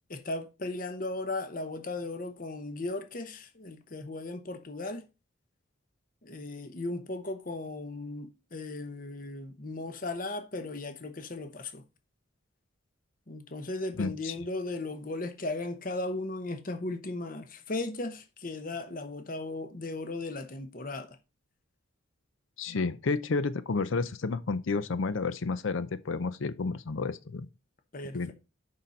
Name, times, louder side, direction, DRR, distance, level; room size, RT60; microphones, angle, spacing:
voice 1, 0.1-5.1 6.2-11.8 13.3-21.2 27.9-28.3, left 2 dB, 40° left, 0.9 m, -36 dB
voice 2, 14.0-14.4 22.6-27.5 28.1-28.3, left 4 dB, 70° left, 0.5 m, -31 dB
6.7 x 5.6 x 5.2 m
head